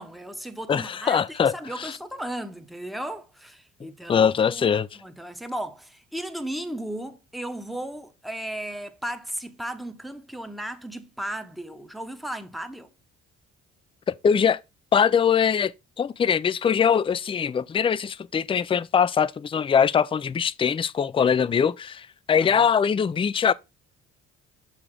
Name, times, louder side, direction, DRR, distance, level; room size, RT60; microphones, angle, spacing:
voice 1, 0.0-12.9 22.4-22.7, right 1 dB, ahead, 0.9 m, -35 dB
voice 2, 0.7-1.5 1.8-1.9 4.1-4.9 14.1-14.6 14.9-15.7 16.0-23.5, left 7 dB, 20° left, 0.3 m, -22 dB
6.3 x 4.9 x 3.5 m
cardioid pair, 90°, 30 cm